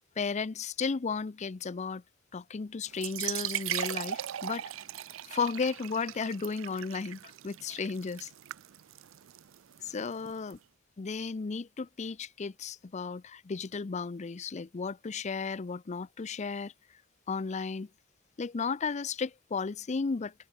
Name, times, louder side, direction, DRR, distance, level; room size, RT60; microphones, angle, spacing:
voice 1, 0.2-2.0 2.3-4.7 5.2-8.3 9.8-10.6 11.0-16.7 17.3-17.9 18.4-20.3, left 5 dB, 35° left, 0.5 m, -34 dB
sound 1, 2.9-10.5, right 12 dB, 75° right, 0.4 m, -39 dB
head